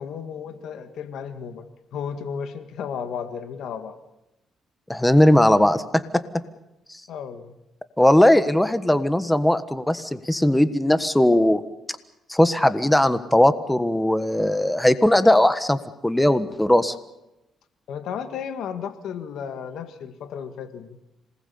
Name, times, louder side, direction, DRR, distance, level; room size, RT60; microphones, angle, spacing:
voice 1, 0.0-1.7 1.9-4.0 7.1-7.6 17.9-21.0, left 7 dB, 75° left, 9 dB, 1.8 m, -33 dB
voice 2, 4.9-6.2 8.0-11.6 12.3-16.9, left 1 dB, 5° left, 12 dB, 1.4 m, -19 dB
26.5 x 19.5 x 7.1 m, 0.92 s
cardioid pair, 90°, 0 cm